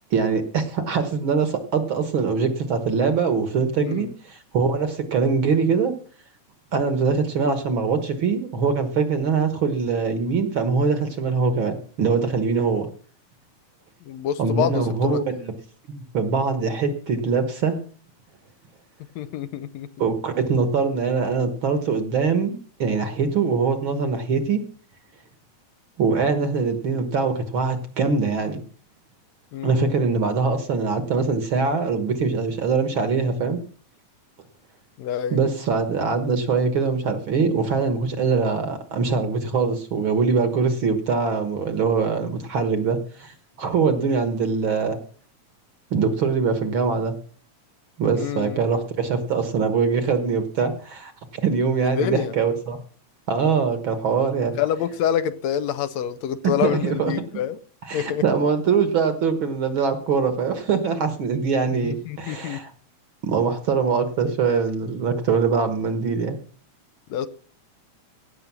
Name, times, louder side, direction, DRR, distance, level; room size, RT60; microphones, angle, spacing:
voice 1, 0.1-5.9 6.7-12.9 14.4-15.5 15.9-17.8 20.0-24.6 26.0-28.6 29.6-33.6 35.3-45.0 45.9-47.1 48.0-52.8 53.3-54.5 56.4-57.1 57.9-62.7 63.2-66.4, right 5 dB, 55° right, 9 dB, 1.7 m, -23 dB
voice 2, 3.8-4.1 14.1-15.2 19.1-19.9 29.5-30.0 35.0-35.4 48.1-48.6 51.8-52.3 54.6-57.6 57.9-58.2 61.8-62.6 67.1-67.3, left 9 dB, 75° left, 12 dB, 1.8 m, -27 dB
17.0 x 6.6 x 6.0 m, 0.43 s
omnidirectional pair, 3.4 m